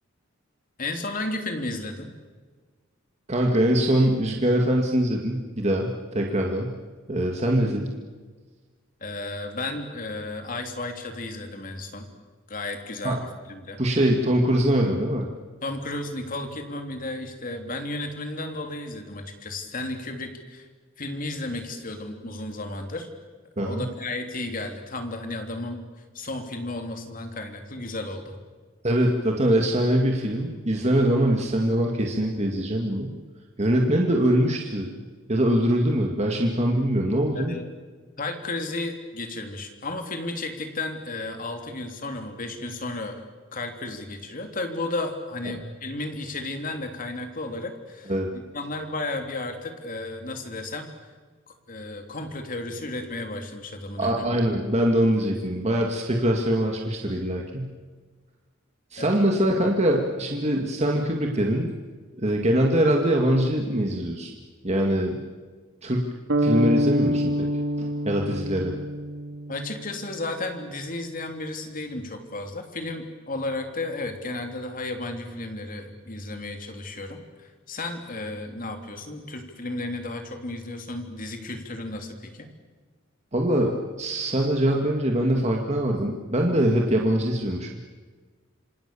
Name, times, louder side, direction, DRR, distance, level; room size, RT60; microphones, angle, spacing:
voice 1, 0.8-2.1 9.0-12.1 12.5-13.8 15.6-20.7 21.0-23.1 23.6-25.8 26.1-28.4 37.3-37.7 38.2-43.2 43.5-50.9 51.7-54.3 59.0-59.1 69.5-82.5, left 2 dB, 45° left, 5 dB, 3.3 m, -33 dB
voice 2, 3.3-6.8 7.1-7.9 13.0-13.2 13.8-15.3 23.6-23.9 28.8-33.1 33.6-34.9 35.3-37.6 48.1-48.3 54.0-57.7 58.9-61.7 62.1-64.3 64.6-65.2 65.8-66.1 66.4-67.5 67.8-68.7 83.3-87.8, right 1 dB, 35° right, 1 dB, 2.2 m, -23 dB
sound 1, 66.3-70.2, equal, 70° right, 2.4 m, -26 dB
27.0 x 26.0 x 7.0 m, 1.4 s
head